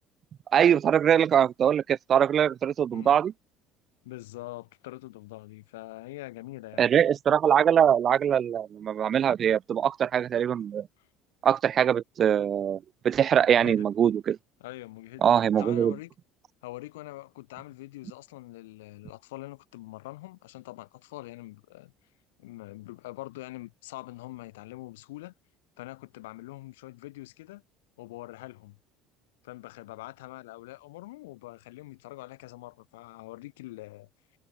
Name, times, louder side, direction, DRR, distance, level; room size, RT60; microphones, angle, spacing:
voice 1, 0.5-3.3 6.8-10.9 11.4-14.4 15.2-16.0, right 9 dB, 45° right, 0.3 m, -23 dB
voice 2, 4.0-6.9 11.0-11.1 13.4-13.9 14.6-15.3 15.6-16.1 16.6-21.9 22.4-25.3 25.8-27.6 28.0-28.8 29.4-34.1, left 18 dB, 85° left, 3.9 m, -43 dB
hypercardioid pair, 75°, 0 cm